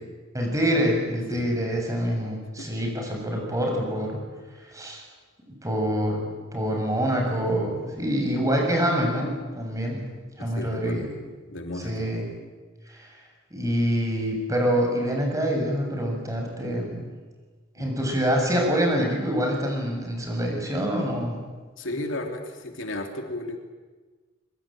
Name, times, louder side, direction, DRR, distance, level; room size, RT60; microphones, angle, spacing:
voice 1, 0.3-4.2 4.7-5.0 5.6-6.2 6.5-10.0 10.4-11.0 11.8-12.3 12.9-13.1 13.5-17.1 17.8-21.4, equal, 15° right, 1 dB, 7.2 m, -26 dB
voice 2, 10.4-11.1 11.5-12.1 17.8-17.9 21.8-23.6, left 1 dB, 70° left, 4 dB, 3.1 m, -34 dB
25.5 x 23.0 x 8.9 m, 1.4 s
head